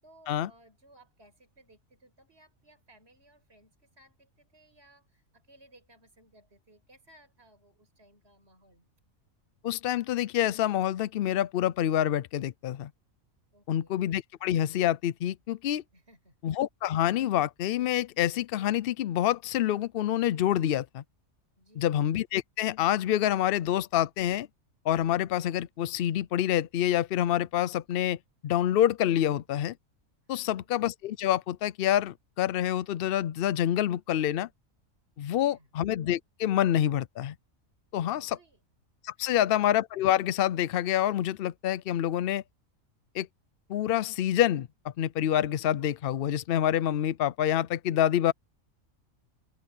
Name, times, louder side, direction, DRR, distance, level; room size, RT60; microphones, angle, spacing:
voice 1, 0.0-8.9 13.5-14.0 15.9-16.4 21.6-22.0 30.3-30.6 35.2-35.7 38.1-38.6 39.2-39.5, right 1 dB, 50° right, 6.5 m, -60 dB
voice 2, 9.6-12.9 13.7-15.8 16.4-21.0 21.8-24.5 24.8-28.2 28.4-29.7 30.3-34.5 35.2-37.3 37.9-38.4 39.0-42.4 43.1-43.3 43.7-48.3, left 11 dB, 65° left, 0.6 m, -27 dB
omnidirectional pair, 1.4 m